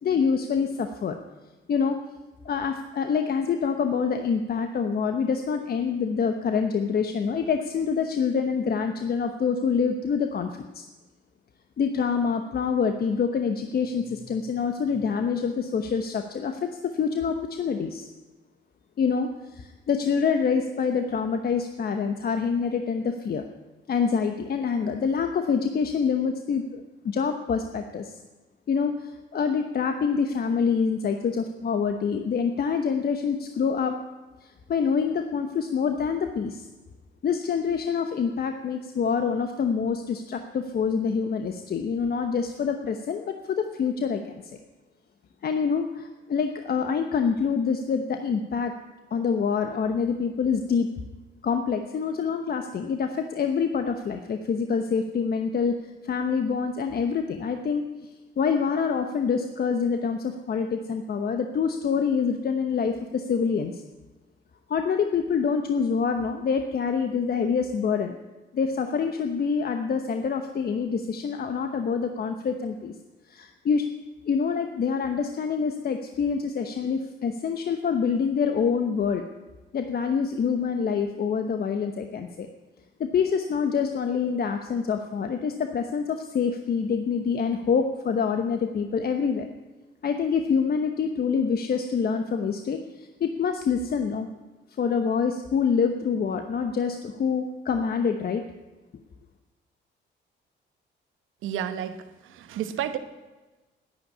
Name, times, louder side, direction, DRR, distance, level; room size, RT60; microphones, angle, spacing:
voice 1, 0.0-1.2 1.7-2.0 2.4-10.8 11.8-18.1 19.0-23.4 23.9-28.2 28.7-34.0 34.4-36.6 37.2-44.4 45.4-48.7 49.1-50.9 51.4-63.8 64.7-68.2 68.5-72.9 73.3-73.9 74.3-79.2 79.7-82.5 83.0-89.5 90.0-94.3 94.8-98.5, left 6 dB, 50° left, 6 dB, 1.0 m, -26 dB
voice 2, 101.4-103.0, right 10 dB, 85° right, 10 dB, 1.1 m, -31 dB
10.5 x 10.5 x 9.7 m, 1.2 s
cardioid pair, 90°, 20 cm